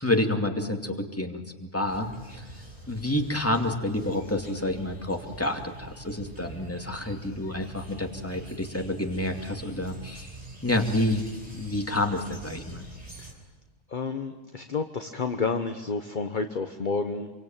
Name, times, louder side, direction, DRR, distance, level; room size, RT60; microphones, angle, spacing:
voice 1, 0.0-2.4 2.9-10.4 10.6-11.3 11.5-12.8, left 1 dB, 10° left, 3 dB, 2.6 m, -29 dB
sound 1, 1.9-13.3, right 2 dB, 30° right, 4.6 m, -44 dB
voice 2, 13.9-17.3, left 4 dB, 40° left, 7 dB, 1.2 m, -30 dB
27.0 x 24.0 x 9.0 m, 1.3 s
omnidirectional pair, 1.3 m